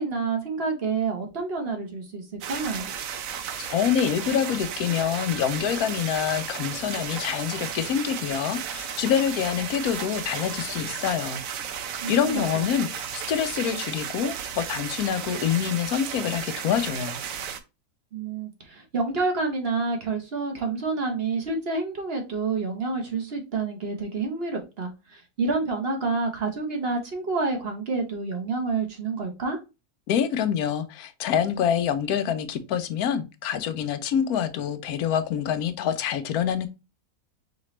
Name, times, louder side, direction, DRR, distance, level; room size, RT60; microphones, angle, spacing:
voice 1, 0.0-2.9 12.0-12.7 18.1-29.6, right 4 dB, 45° right, 1.1 m, -28 dB
sound 1, 2.4-17.6, right 8 dB, 65° right, 1.0 m, -34 dB
voice 2, 3.6-11.4 12.1-17.2 30.1-36.7, left 8 dB, 75° left, 1.1 m, -26 dB
4.9 x 3.0 x 3.1 m
omnidirectional pair, 1.6 m